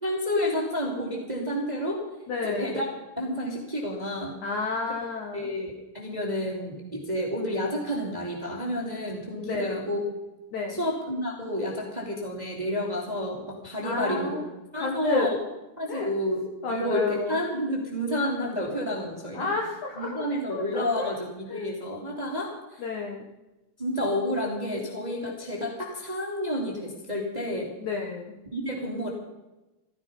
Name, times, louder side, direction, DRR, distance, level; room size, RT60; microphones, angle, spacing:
voice 1, 0.0-2.0 2.4-2.9 3.2-4.3 4.9-5.0 5.3-10.0 10.7-14.3 14.7-15.3 15.8-16.4 16.7-19.5 20.0-22.5 23.8-27.7 28.5-29.1, equal, 15° right, -1 dB, 1.7 m, -30 dB
voice 2, 2.3-2.8 4.4-5.5 9.4-9.8 10.5-10.9 13.8-14.5 14.8-15.3 15.9-16.1 16.6-17.4 19.3-21.2 21.5-21.7 22.8-23.3 27.8-28.3, left 4 dB, 65° left, 1 dB, 2.1 m, -31 dB
14.5 x 14.5 x 5.4 m, 1.0 s
omnidirectional pair, 4.8 m